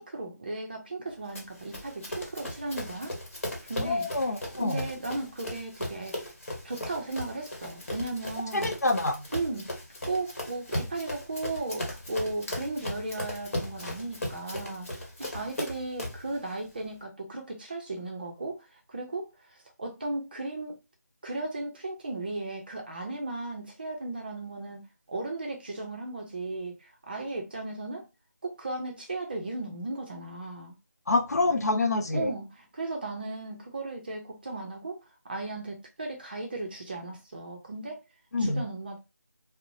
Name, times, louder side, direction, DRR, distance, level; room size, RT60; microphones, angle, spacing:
voice 1, 0.0-3.1 3.7-4.1 4.5-6.2 6.6-8.7 9.3-9.7 10.1-19.3 19.8-20.8 21.2-24.8 25.1-26.8 27.1-28.1 28.4-30.7 32.1-38.0 38.4-39.0, right 2 dB, 30° right, 0.6 m, -36 dB
Run, 1.3-16.3, left 1 dB, 50° left, 1.1 m, -37 dB
voice 2, 3.8-4.8 8.5-9.2 31.1-32.3 38.3-38.6, left 2 dB, 65° left, 0.6 m, -26 dB
2.8 x 2.0 x 2.6 m
figure-of-eight pair, 170°, 9 cm